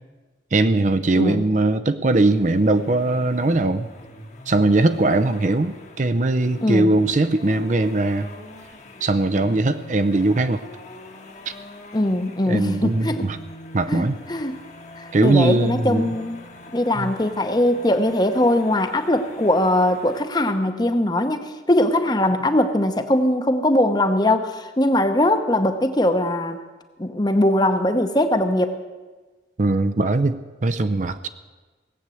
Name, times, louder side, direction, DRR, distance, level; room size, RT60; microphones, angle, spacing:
voice 1, 0.5-3.9 4.5-8.3 9.0-10.6 12.5-13.4 13.7-14.2 15.1-16.1 17.0-17.1 29.6-31.3, right 2 dB, 45° right, 10 dB, 0.6 m, -20 dB
sound 1, 2.1-20.3, left 1 dB, 40° left, 1.3 m, -42 dB
voice 2, 6.6-6.9 11.9-13.2 13.9-14.6 15.0-16.4 16.7-26.6 27.0-28.8, left 1 dB, 25° left, 8 dB, 0.9 m, -21 dB
18.0 x 8.0 x 7.7 m, 1.3 s
head